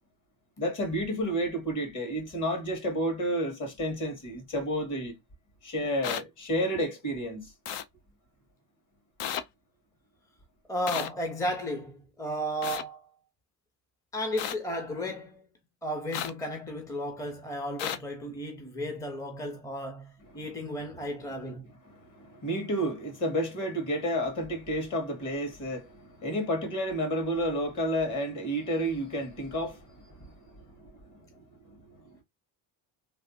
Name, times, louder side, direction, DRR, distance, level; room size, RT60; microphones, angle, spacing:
voice 1, 0.6-5.2 5.6-7.5 21.9-31.8, equal, 45° left, 1.9 m, -31 dB
sound 1, 6.0-6.2 7.7-7.8 9.2-9.4 10.9-11.1 12.6-12.8 14.4-14.5 16.1-16.3 17.8-18.0, left 9 dB, 75° left, 0.6 m, -32 dB
voice 2, 10.7-13.1 14.1-15.4 15.8-21.6, equal, 10° left, 0.6 m, -34 dB
3.2 x 2.5 x 2.7 m
cardioid pair, 110°, 42 cm